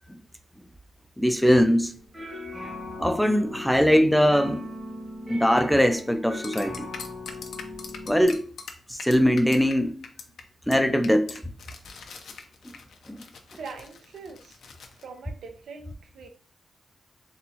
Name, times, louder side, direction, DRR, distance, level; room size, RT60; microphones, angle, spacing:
voice 1, 1.2-1.9 3.0-4.7 5.3-6.9 8.1-8.4 8.9-10.0 10.7-11.4, equal, ahead, 0.3 m, -21 dB
sound 1, 1.9-8.2, left 2 dB, 20° right, 1.0 m, -39 dB
sound 2, 6.4-9.7 10.0-10.4 10.7-10.8 11.0-15.0, left 5 dB, 85° left, 0.6 m, -42 dB
voice 2, 13.6-14.6 15.0-16.3, right 4 dB, 85° right, 0.7 m, -42 dB
4.2 x 3.5 x 2.8 m
wide cardioid pair, 135°, 0 cm